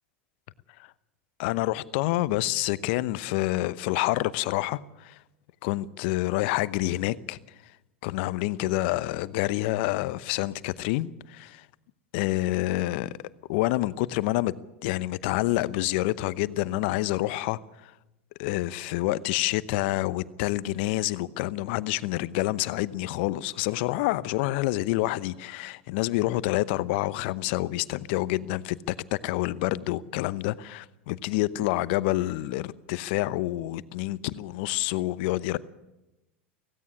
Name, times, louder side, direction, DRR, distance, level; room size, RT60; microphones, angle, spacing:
voice 1, 1.4-5.2 5.6-7.4 8.0-11.7 12.1-13.1 13.5-14.5 14.8-17.9 18.4-35.6, left 17 dB, 60° left, 0.8 m, -28 dB
16.5 x 16.5 x 9.9 m
hypercardioid pair, 90°, 7 cm